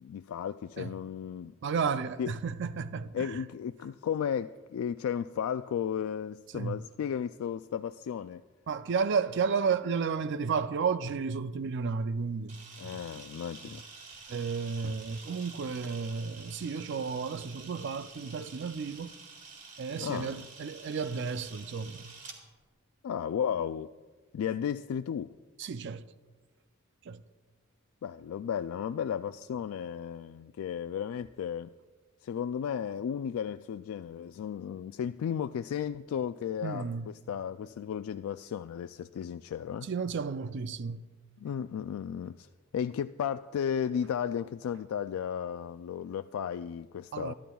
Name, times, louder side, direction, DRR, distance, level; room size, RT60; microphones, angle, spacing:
voice 1, 0.0-1.5 2.2-2.3 3.1-8.4 12.8-13.8 20.0-20.4 23.0-23.9 24.3-25.3 28.0-31.7 32.2-39.9 41.4-42.5 42.7-47.3, left 8 dB, 90° left, 0.3 m, -34 dB
voice 2, 1.6-3.4 6.5-6.8 8.7-13.0 14.3-19.1 19.8-22.1 25.6-26.0 27.1-27.2 36.6-37.1 39.8-41.0 47.1-47.3, right 5 dB, 60° right, 0.4 m, -32 dB
Camera, 12.5-22.4, right 4 dB, 40° right, 1.9 m, -49 dB
26.5 x 11.5 x 2.3 m
head